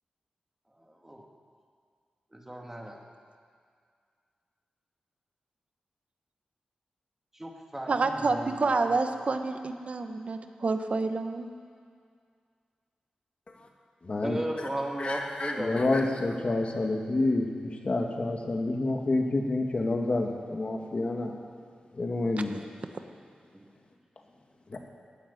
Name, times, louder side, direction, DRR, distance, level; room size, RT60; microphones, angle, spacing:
voice 1, 0.8-1.3 2.3-3.0 7.3-8.9 14.2-16.0 23.5-23.7, right 1 dB, 15° right, 0 dB, 2.4 m, -36 dB
voice 2, 7.9-11.5 22.4-22.5, right 3 dB, 55° right, 6 dB, 1.2 m, -28 dB
voice 3, 14.0-14.4 15.0-21.3 22.0-22.6 24.7-24.8, left 2 dB, 45° left, 2 dB, 2.1 m, -28 dB
15.5 x 9.1 x 9.9 m, 2.2 s
cardioid pair, 65°, 3 cm